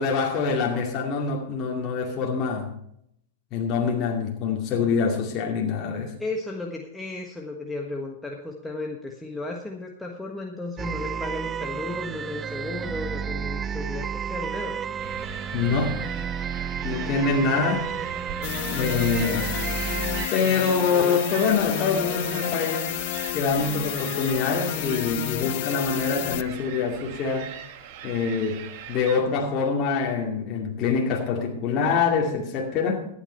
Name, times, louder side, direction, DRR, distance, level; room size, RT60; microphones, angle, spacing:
voice 1, 0.0-2.7 3.5-6.1 15.5-16.1 16.8-17.9 18.7-19.5 20.3-22.9 23.3-27.5 28.0-33.1, left 5 dB, 35° left, 2.3 m, -25 dB
voice 2, 6.2-14.8, left 2 dB, 5° left, 1.4 m, -34 dB
sound 1, 10.8-20.3, right 7 dB, 20° right, 0.4 m, -31 dB
sound 2, 15.0-29.2, right 9 dB, 55° right, 1.5 m, -40 dB
sound 3, 18.4-26.4, left 15 dB, 55° left, 0.6 m, -31 dB
14.0 x 9.5 x 4.4 m
hypercardioid pair, 125°, 0 cm